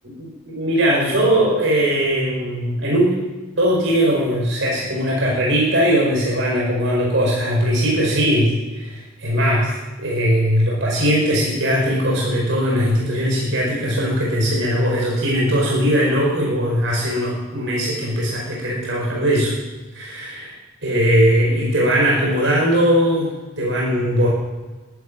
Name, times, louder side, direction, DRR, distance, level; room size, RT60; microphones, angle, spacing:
voice 1, 0.2-3.2 3.6-9.7 10.0-19.5 19.9-20.5 20.8-24.3, equal, 70° right, -3 dB, 4.9 m, -19 dB
12.5 x 12.0 x 9.0 m, 1.3 s
head